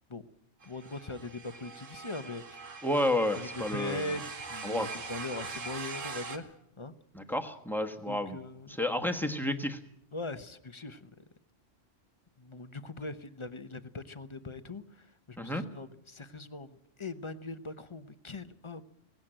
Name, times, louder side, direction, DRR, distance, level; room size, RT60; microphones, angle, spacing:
voice 1, 0.6-2.6 3.3-6.9 8.1-8.8 10.1-11.2 12.4-18.8, left 2 dB, 25° left, 11 dB, 0.8 m, -41 dB
sound 1, 0.6-6.4, right 4 dB, 85° right, 1.8 m, -42 dB
voice 2, 2.8-4.1 4.6-4.9 7.1-8.4 8.7-9.8 15.4-15.6, left 1 dB, ahead, 7 dB, 1.3 m, -31 dB
18.0 x 17.0 x 8.9 m, 0.78 s
omnidirectional pair, 1.3 m